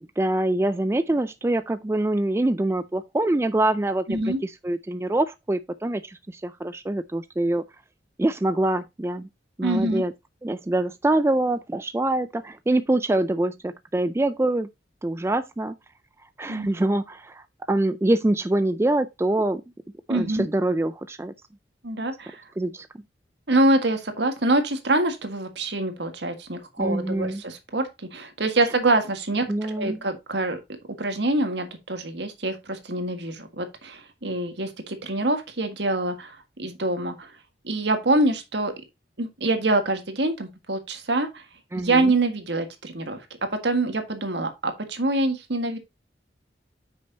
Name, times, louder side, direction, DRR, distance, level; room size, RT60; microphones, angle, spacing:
voice 1, 0.2-7.6 8.2-9.3 9.6-10.1 10.4-14.7 15.0-15.7 16.4-19.6 20.1-21.3 22.6-22.9 26.8-27.4 29.5-30.0 41.7-42.1, right 1 dB, 15° right, 0.3 m, -25 dB
voice 2, 4.1-4.4 9.6-10.0 16.5-16.7 20.1-20.5 21.8-22.4 23.5-30.6 31.0-37.3 37.6-38.7 39.2-41.4 41.7-43.2 43.6-45.8, right 2 dB, 70° right, 1.7 m, -25 dB
8.8 x 6.2 x 2.8 m
head